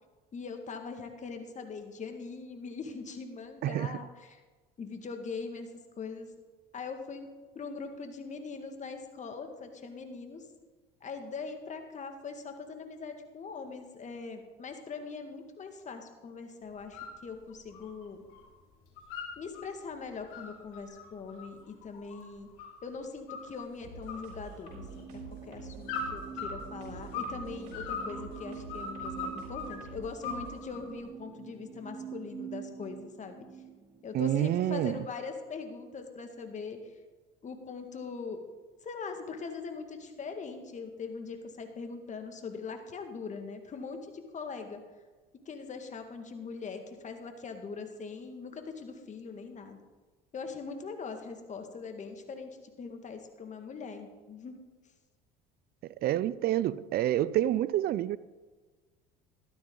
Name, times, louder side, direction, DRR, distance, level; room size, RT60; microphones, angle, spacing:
voice 1, 0.3-4.4 4.8-6.3 6.7-7.3 7.6-10.5 11.0-18.3 19.4-22.5 22.8-33.5 34.0-37.0 37.4-38.4 38.8-44.8 45.5-49.8 50.3-54.6, left 4 dB, 40° left, 1.9 m, -41 dB
voice 2, 3.6-3.9 34.1-35.0 56.0-58.2, right 13 dB, 50° right, 0.5 m, -28 dB
sound 1, 16.7-17.2 17.5-18.5 18.7-19.7 20.1-22.9 23.3-23.7 24.1-25.0 25.8-27.4 27.7-29.8 30.2-31.0, left 4 dB, 75° left, 2.6 m, -39 dB
sound 2, 23.8-30.6, right 4 dB, 85° right, 3.9 m, -47 dB
sound 3, 24.7-34.5, right 7 dB, 25° right, 2.0 m, -46 dB
13.5 x 12.0 x 3.9 m
supercardioid pair, 85°, 20 cm